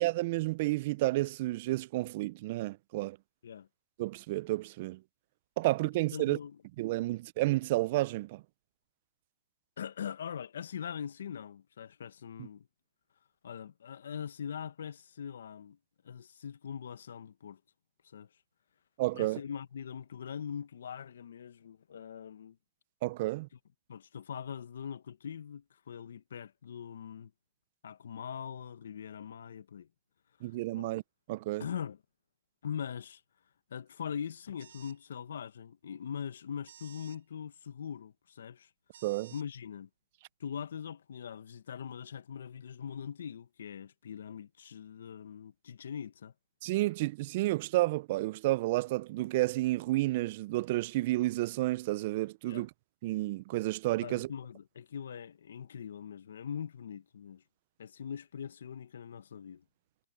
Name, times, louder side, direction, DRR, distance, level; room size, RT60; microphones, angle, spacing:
voice 1, 0.0-3.2 4.0-5.0 5.6-6.4 6.8-8.4 19.0-19.4 23.0-23.5 30.4-31.0 31.3-31.6 39.0-39.3 46.6-52.7 53.0-54.3, right 18 dB, 50° right, 0.4 m, -31 dB
voice 2, 6.1-6.6 9.8-12.7 13.4-15.8 16.0-17.6 18.0-18.3 19.1-22.6 23.9-27.3 27.8-29.9 30.7-30.9 31.6-32.0 32.6-33.2 33.7-38.7 39.3-39.9 40.4-46.3 52.5-52.7 54.0-57.4 57.8-59.6, left 8 dB, 75° left, 1.1 m, -42 dB
sound 1, 34.6-35.0 36.6-37.2 38.9-39.4, right 9 dB, 70° right, 3.2 m, -55 dB
hypercardioid pair, 135°, 0 cm